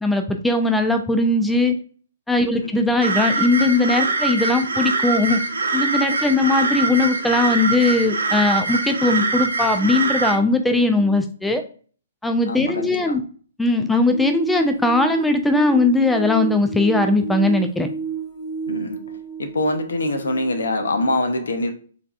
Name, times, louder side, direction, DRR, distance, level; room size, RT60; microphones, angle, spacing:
voice 1, 0.0-1.8 2.3-5.4 5.7-11.6 12.2-13.2 13.6-17.9, left 2 dB, 5° left, 0.4 m, -19 dB
sound 1, 3.0-10.4, right 3 dB, 70° right, 0.7 m, -23 dB
voice 2, 12.5-13.2 18.7-19.0 19.4-21.7, left 2 dB, 65° left, 0.7 m, -24 dB
sound 2, 14.1-21.2, right 6 dB, 40° left, 1.8 m, -31 dB
4.6 x 3.5 x 2.4 m
figure-of-eight pair, 120°, 0 cm